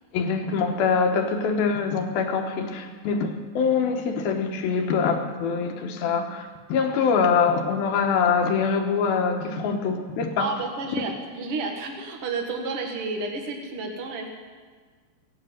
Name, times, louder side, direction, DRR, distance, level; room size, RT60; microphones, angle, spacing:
voice 1, 0.1-10.5 11.0-11.1, left 5 dB, 70° left, 4 dB, 2.7 m, -24 dB
voice 2, 10.4-14.3, right 3 dB, 45° right, 2 dB, 1.9 m, -31 dB
17.0 x 9.8 x 7.9 m, 1.5 s
omnidirectional pair, 5.0 m